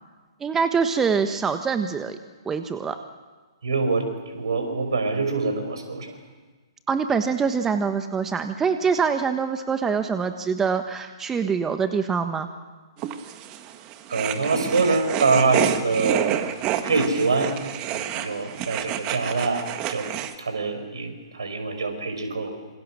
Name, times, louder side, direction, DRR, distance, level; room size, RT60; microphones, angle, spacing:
voice 1, 0.4-2.2 2.4-3.0 6.9-12.5, right 6 dB, 15° right, 8 dB, 1.3 m, -24 dB
voice 2, 3.6-6.1 14.1-16.4 16.8-17.5 17.9-20.1 20.4-22.5, right 4 dB, 70° right, 6 dB, 6.0 m, -24 dB
sound 1, 13.0-20.3, right 11 dB, 30° right, 1.8 m, -29 dB
27.5 x 26.5 x 6.5 m, 1.4 s
figure-of-eight pair, 120°, 3 cm